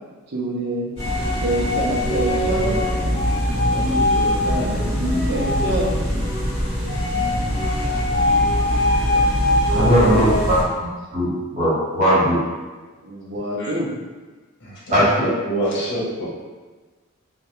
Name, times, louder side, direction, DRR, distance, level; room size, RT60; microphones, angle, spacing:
voice 1, 0.3-1.0 1.4-2.8 3.7-6.0 9.4-10.2 13.0-13.9, right 1 dB, 55° right, -3 dB, 0.5 m, -27 dB
sound 1, 1.0-10.6, left 1 dB, 30° left, 1.0 m, -21 dB
voice 2, 9.7-12.4 14.9-15.0, equal, 40° right, -10 dB, 1.2 m, -19 dB
voice 3, 14.6-16.3, right 1 dB, 60° left, -6 dB, 0.8 m, -26 dB
2.3 x 2.1 x 2.8 m, 1.3 s
head